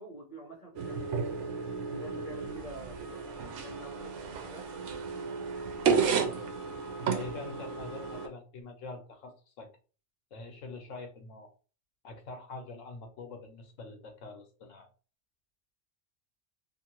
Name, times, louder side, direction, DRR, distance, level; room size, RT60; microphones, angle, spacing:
voice 1, 0.0-1.4 1.9-4.7, right 1 dB, 40° left, -4 dB, 1.0 m, -47 dB
sound 1, 0.8-8.3, right 5 dB, 75° right, 0.9 m, -33 dB
voice 2, 5.8-6.5 7.1-9.7 10.3-11.5 12.0-14.9, left 3 dB, 85° left, 4 dB, 1.1 m, -44 dB
2.6 x 2.6 x 2.9 m, 0.37 s
omnidirectional pair, 1.3 m